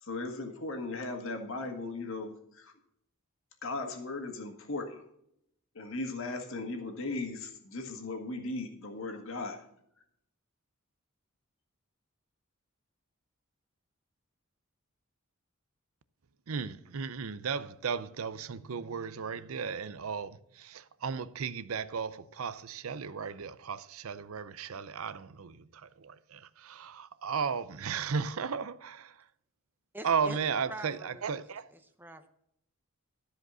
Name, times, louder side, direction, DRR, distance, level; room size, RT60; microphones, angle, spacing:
voice 1, 0.0-2.7 3.6-5.0 5.7-9.6, left 2 dB, 65° left, 1.8 m, -37 dB
voice 2, 16.5-25.6 26.0-29.1 30.0-31.6, right 6 dB, 75° right, 0.6 m, -35 dB
voice 3, 29.9-30.4 30.7-32.3, right 1 dB, 10° right, 0.7 m, -45 dB
13.5 x 5.1 x 6.2 m
head